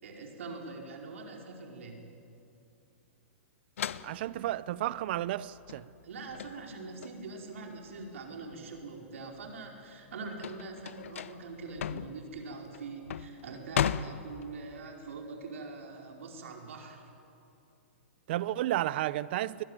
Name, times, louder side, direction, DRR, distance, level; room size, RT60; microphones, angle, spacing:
voice 1, 0.0-2.0 6.0-17.0, right 3 dB, 75° right, 4.7 m, -43 dB
sound 1, 3.8-8.8 9.2-14.8, left 9 dB, 75° left, 0.8 m, -37 dB
voice 2, 4.0-5.9 18.3-19.6, right 14 dB, 50° right, 0.7 m, -32 dB
22.5 x 21.0 x 9.2 m
hypercardioid pair, 150°, 7 cm